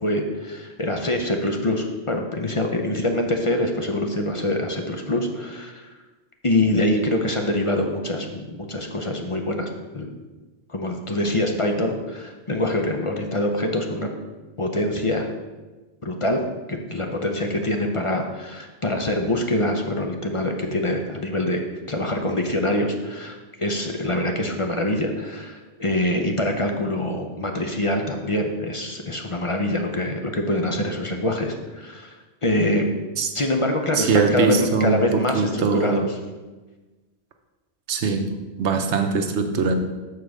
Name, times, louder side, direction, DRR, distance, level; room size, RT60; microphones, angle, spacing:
voice 1, 0.0-5.9 6.4-10.2 10.7-14.1 14.6-15.3 16.0-16.4 16.7-32.9 33.3-36.2, left 1 dB, 35° left, 3 dB, 0.6 m, -25 dB
voice 2, 34.0-36.1 37.9-39.7, right 4 dB, 80° right, 6 dB, 1.0 m, -22 dB
7.0 x 4.1 x 6.3 m, 1.2 s
omnidirectional pair, 1.2 m